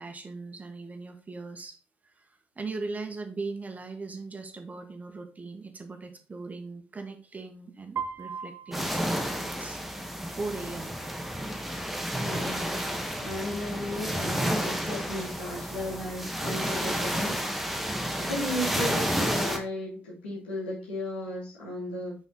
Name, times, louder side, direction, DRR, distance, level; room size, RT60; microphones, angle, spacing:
voice 1, 0.0-1.8 2.0-9.8 10.3-10.9 17.9-18.4, right 3 dB, 30° right, 5 dB, 1.5 m, -39 dB
Piano, 8.0-10.0, right 6 dB, 45° right, 0.6 m, -39 dB
sound 1, 8.7-19.6, equal, 5° right, 1.5 m, -31 dB
voice 2, 12.2-17.4 18.3-22.1, left 1 dB, 80° left, -4 dB, 2.3 m, -35 dB
6.0 x 5.6 x 3.9 m, 0.37 s
figure-of-eight pair, 40°, 6 cm